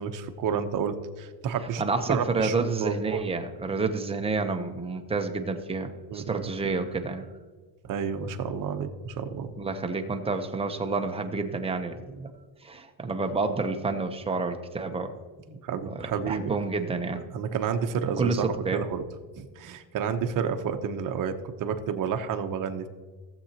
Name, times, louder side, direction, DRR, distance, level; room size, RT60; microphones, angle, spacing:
voice 1, 0.0-1.8 2.1-3.3 6.1-6.4 7.9-9.5 15.6-16.5 17.3-18.5 18.7-19.0 19.4-22.9, right 7 dB, 45° right, 6 dB, 0.9 m, -30 dB
voice 2, 1.8-7.3 9.6-12.3 12.6-15.1 15.5-15.6 15.8-17.2 18.2-18.8, right 3 dB, 15° right, 5 dB, 0.7 m, -29 dB
16.0 x 7.9 x 2.9 m, 1.4 s
cardioid pair, 140°, 46 cm